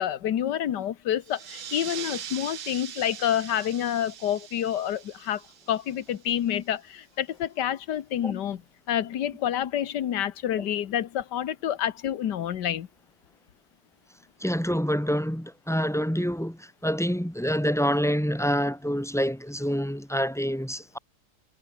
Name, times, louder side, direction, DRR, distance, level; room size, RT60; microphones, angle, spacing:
voice 1, 0.0-5.4 5.7-8.6 8.9-12.9, left 10 dB, 60° left, 1.6 m, -28 dB
sound 1, 1.2-6.4, right 9 dB, 75° right, 2.4 m, -41 dB
voice 2, 14.4-21.0, equal, ahead, 1.4 m, -27 dB
omnidirectional pair, 2.3 m